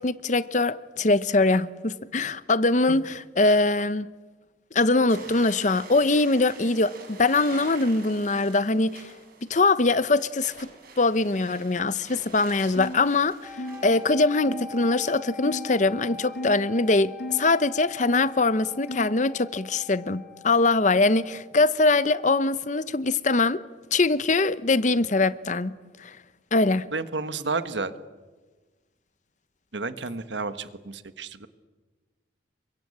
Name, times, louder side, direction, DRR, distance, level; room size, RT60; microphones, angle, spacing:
voice 1, 0.0-4.1 4.7-9.0 9.5-10.7 11.0-13.5 13.8-23.6 23.9-25.7 26.0-26.2 26.5-26.8, left 3 dB, 40° left, 0.8 m, -22 dB
sound 1, 5.1-14.1, right 4 dB, 50° right, 7.6 m, -46 dB
sound 2, 12.7-13.0 13.6-13.8 14.4-14.7 15.4-15.7 16.3-16.6 17.2-17.4 18.0-18.3 18.9-19.2, left 1 dB, 65° left, 2.6 m, -35 dB
sound 3, 13.4-21.5, left 4 dB, 5° right, 7.1 m, -43 dB
voice 2, 26.9-27.9 29.7-31.5, right 3 dB, 75° right, 1.4 m, -31 dB
28.0 x 24.0 x 8.7 m
head